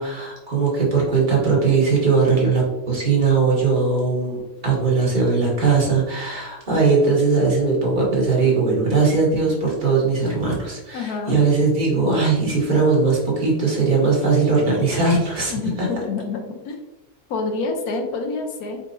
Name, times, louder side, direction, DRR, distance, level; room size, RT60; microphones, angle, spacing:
voice 1, 0.0-15.9, right 4 dB, 35° right, -4 dB, 1.5 m, -19 dB
voice 2, 10.9-11.4 15.5-16.8 17.3-18.8, left 4 dB, 80° left, 4 dB, 1.2 m, -27 dB
4.5 x 4.1 x 2.6 m, 1.0 s
omnidirectional pair, 1.6 m